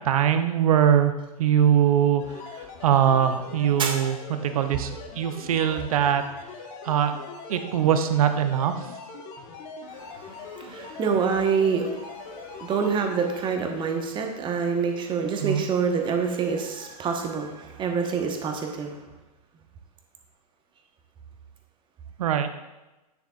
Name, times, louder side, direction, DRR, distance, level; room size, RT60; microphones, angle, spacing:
voice 1, 0.0-2.2 2.8-4.2 4.4-6.2 6.8-7.1 7.5-8.7 15.4-15.6 22.2-22.5, right 9 dB, 60° right, 8 dB, 0.7 m, -22 dB
sound 1, 2.2-13.5, left 4 dB, 40° left, 1.2 m, -41 dB
voice 2, 9.9-19.0, right 5 dB, 25° right, 3 dB, 1.1 m, -27 dB
9.2 x 7.0 x 2.4 m, 1.0 s
figure-of-eight pair, 100°, 20 cm